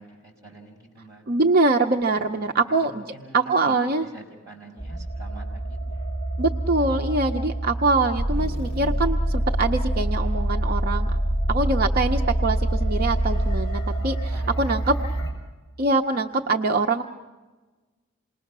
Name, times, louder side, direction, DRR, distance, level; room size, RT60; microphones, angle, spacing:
voice 1, 0.0-1.3 2.1-2.4 2.7-6.0 11.4-11.5 14.3-14.5 15.0-15.3, right 2 dB, 15° right, -1 dB, 6.2 m, -46 dB
voice 2, 1.3-3.1 3.3-4.1 6.4-11.1 11.5-15.0 15.8-17.0, right 3 dB, 45° right, 4 dB, 0.6 m, -23 dB
sound 1, 4.8-15.3, right 2 dB, 20° left, 5.3 m, -29 dB
sound 2, 8.2-13.8, equal, 55° left, 2.0 m, -26 dB
28.0 x 20.0 x 6.0 m, 1.3 s
head